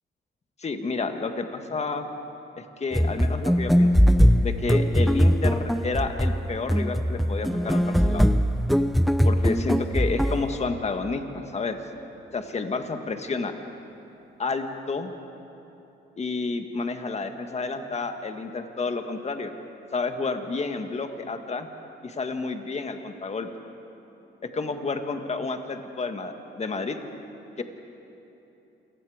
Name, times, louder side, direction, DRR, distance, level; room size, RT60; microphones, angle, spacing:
voice 1, 0.6-2.1 2.8-3.9 4.4-8.3 9.2-11.2 11.5-11.8 12.3-13.5 14.4-15.1 16.2-19.5 19.9-21.7 22.0-23.5 24.4-27.0 27.6-27.7, left 4 dB, 35° left, 6 dB, 1.7 m, -30 dB
sound 1, 2.9-10.5, equal, ahead, 0.6 m, -21 dB
27.5 x 19.0 x 5.0 m, 3.0 s
cardioid pair, 90°, 20 cm